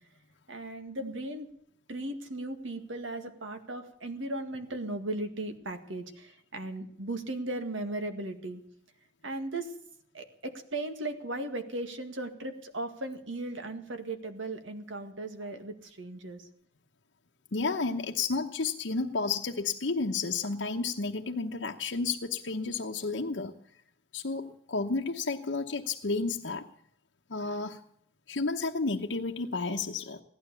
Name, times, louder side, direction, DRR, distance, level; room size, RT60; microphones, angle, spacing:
voice 1, 0.5-1.5 1.9-8.6 9.2-9.7 10.1-16.5, right 2 dB, 90° right, 7 dB, 2.0 m, -37 dB
voice 2, 17.5-23.5 24.1-26.7 27.3-27.8 28.3-30.2, left 4 dB, 75° left, 1 dB, 1.0 m, -31 dB
16.5 x 12.0 x 6.9 m, 0.69 s
head